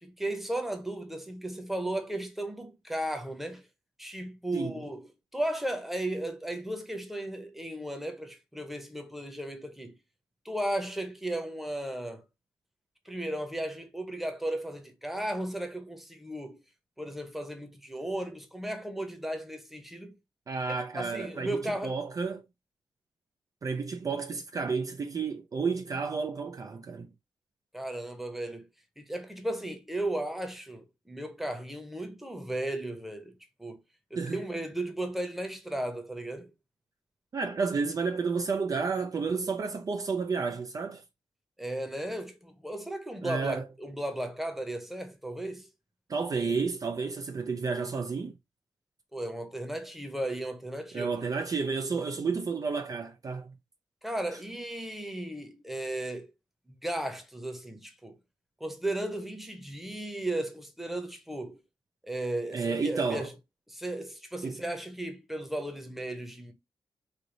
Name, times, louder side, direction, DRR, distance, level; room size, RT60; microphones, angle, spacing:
voice 1, 0.0-3.7 4.0-10.0 10.4-12.2 13.0-16.6 17.0-20.2 20.9-22.0 27.7-28.7 29.0-33.8 34.1-36.5 41.6-45.7 49.1-51.2 54.0-56.3 56.7-58.2 58.6-61.6 62.0-63.3 63.7-66.5, right 1 dB, 5° right, 0.9 m, -35 dB
voice 2, 20.5-22.4 23.6-27.1 34.2-34.4 37.3-41.0 43.2-43.6 46.1-48.4 50.9-53.5 62.5-63.3 64.4-64.6, right 5 dB, 40° right, 0.4 m, -31 dB
3.3 x 2.6 x 3.8 m
cardioid pair, 90°, 9 cm